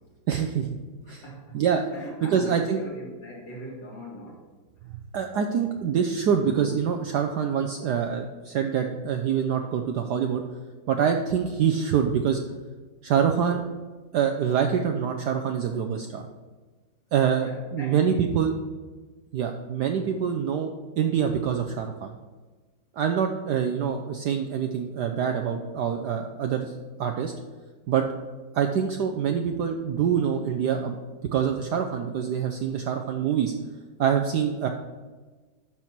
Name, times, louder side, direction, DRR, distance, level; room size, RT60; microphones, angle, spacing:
voice 1, 0.3-0.7 1.1-1.2 1.5-1.9 2.2-2.8 5.1-10.4 10.9-12.4 13.0-13.6 14.1-16.3 17.1-18.5 19.3-22.1 23.0-27.3 27.9-28.0 28.5-31.0 31.3-33.5 34.0-34.7, right 7 dB, 70° right, 5 dB, 1.0 m, -25 dB
voice 2, 1.0-1.6 1.9-4.4 17.4-18.4, equal, 60° left, -3 dB, 3.0 m, -41 dB
12.0 x 4.5 x 6.0 m, 1.3 s
omnidirectional pair, 2.3 m